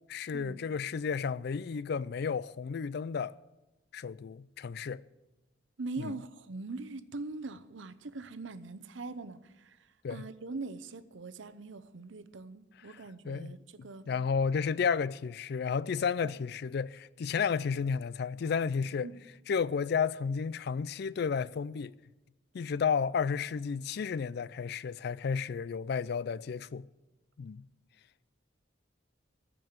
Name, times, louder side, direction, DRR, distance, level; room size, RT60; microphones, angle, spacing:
voice 1, 0.1-3.4 3.9-5.0 6.0-6.1 10.0-10.2 12.9-13.0 13.2-13.6 14.1-19.1 19.5-21.9 22.5-26.9 27.4-27.7, left 6 dB, 55° left, 0.3 m, -32 dB
voice 2, 5.8-14.1 16.2-16.3 19.0-19.2, right 3 dB, 75° right, 0.7 m, -42 dB
14.5 x 5.4 x 9.3 m
head